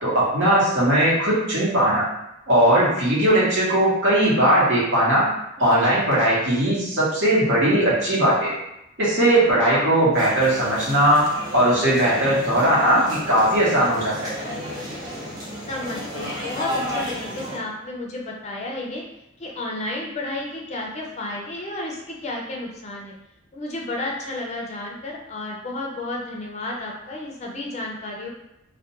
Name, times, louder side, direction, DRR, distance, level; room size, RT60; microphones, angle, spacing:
voice 1, 0.0-2.0 2.5-5.3 5.6-8.5 9.0-11.2 11.5-14.3, right 1 dB, 70° right, -7 dB, 1.0 m, -19 dB
sound 1, 10.1-17.6, equal, 20° right, 0.6 m, -33 dB
voice 2, 15.7-19.0 19.4-23.2 23.5-28.3, left 2 dB, 35° left, -1 dB, 0.4 m, -32 dB
2.3 x 2.1 x 2.8 m, 0.86 s
head